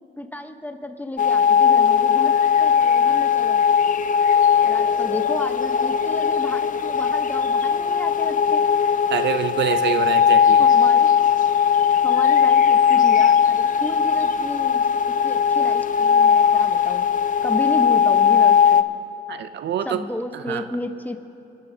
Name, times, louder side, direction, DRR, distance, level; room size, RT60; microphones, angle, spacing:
voice 1, 0.2-3.6 4.6-8.6 10.6-11.1 12.0-17.1 17.4-18.9 19.8-21.3, left 1 dB, 10° left, 7 dB, 0.8 m, -32 dB
sound 1, 1.2-18.8, left 7 dB, 40° left, 0.5 m, -18 dB
voice 2, 9.1-10.6 19.3-20.0 20.5-20.6, right 9 dB, 60° right, 11 dB, 0.5 m, -25 dB
27.0 x 11.0 x 2.7 m, 2.8 s
cardioid pair, 90°, 20 cm